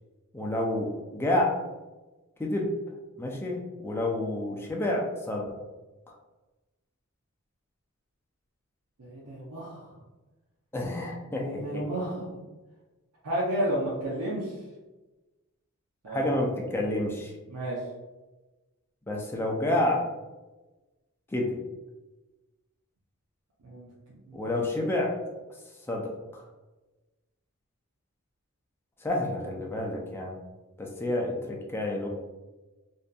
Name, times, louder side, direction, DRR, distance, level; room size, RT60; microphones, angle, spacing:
voice 1, 0.3-1.5 2.4-2.7 3.2-5.6 10.7-11.6 16.1-17.3 19.1-20.0 21.3-21.6 24.3-25.1 25.9-26.4 29.0-30.4 30.8-32.1, left 1 dB, 10° left, -1 dB, 0.3 m, -29 dB
voice 2, 9.0-9.9 11.4-12.4 13.2-14.6 16.0-16.2 17.5-17.8 23.6-23.9 24.3-24.5, right 1 dB, 85° right, -6 dB, 0.6 m, -32 dB
2.6 x 2.5 x 2.2 m, 1.2 s
head